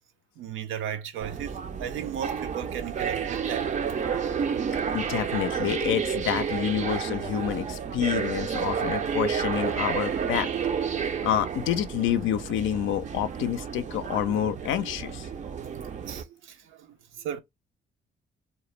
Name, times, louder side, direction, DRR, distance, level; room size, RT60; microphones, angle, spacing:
voice 1, 0.4-4.0 13.9-14.0 16.1-16.9 17.2-17.4, right 9 dB, 80° right, 0.6 m, -36 dB
sound 1, 1.2-16.2, right 7 dB, 40° right, 0.4 m, -30 dB
voice 2, 4.9-10.5 11.2-15.3, left 10 dB, 80° left, 0.4 m, -28 dB
2.3 x 2.0 x 3.0 m
cardioid pair, 90°, 20 cm